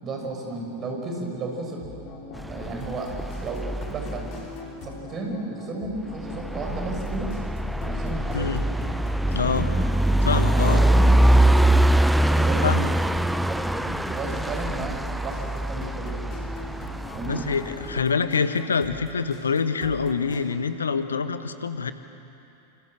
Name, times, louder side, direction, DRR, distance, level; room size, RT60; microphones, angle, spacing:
voice 1, 0.0-2.0 2.5-3.1 3.4-4.3 4.8-7.3 7.8-8.6 9.4-9.8 10.2-11.1 11.4-11.8 12.3-13.0 13.5-16.2 17.1-17.4, right 2 dB, 30° right, 1 dB, 6.7 m, -33 dB
sound 1, 1.7-20.4, left 4 dB, 40° left, 5.4 m, -41 dB
sound 2, 2.4-4.6 6.2-18.0, right 1 dB, 5° right, 0.6 m, -23 dB
voice 2, 8.3-8.6 9.3-9.7 10.2-10.8 12.6-12.9 17.3-21.9, left 5 dB, 70° left, 11 dB, 1.4 m, -25 dB
27.5 x 26.5 x 7.8 m, 2.9 s
figure-of-eight pair, 90°, 0 cm